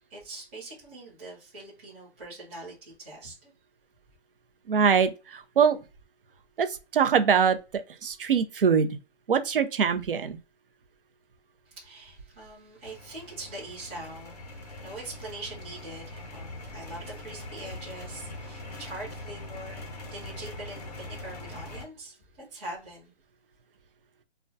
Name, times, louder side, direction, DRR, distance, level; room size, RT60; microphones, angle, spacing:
voice 1, 0.1-3.5 11.7-23.1, right 2 dB, 10° right, 0.7 m, -43 dB
voice 2, 4.7-5.8 6.6-6.7 6.9-8.9 9.3-10.4, right 6 dB, 50° right, 0.5 m, -23 dB
sound 1, 12.8-21.8, left 2 dB, 35° left, 0.6 m, -42 dB
2.2 x 2.2 x 2.5 m
hypercardioid pair, 165°, 35 cm